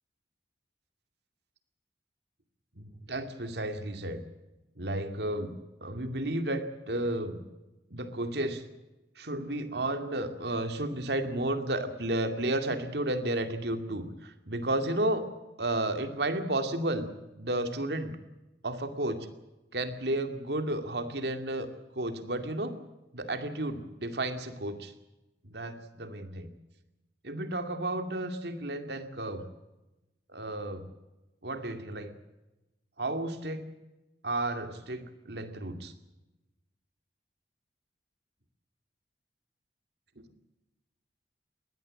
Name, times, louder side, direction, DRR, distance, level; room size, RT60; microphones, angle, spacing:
voice 1, 2.8-4.2 4.8-5.5 5.8-7.4 7.9-8.6 9.2-15.2 15.6-17.1 17.4-18.2 18.6-19.3 19.7-21.7 21.9-22.7 23.1-24.9 25.4-26.5 27.2-29.4 30.3-30.9 31.4-32.1 33.0-33.6 34.2-35.9, right 1 dB, 70° right, 8 dB, 2.4 m, -32 dB
21.5 x 17.5 x 8.7 m, 1.0 s
head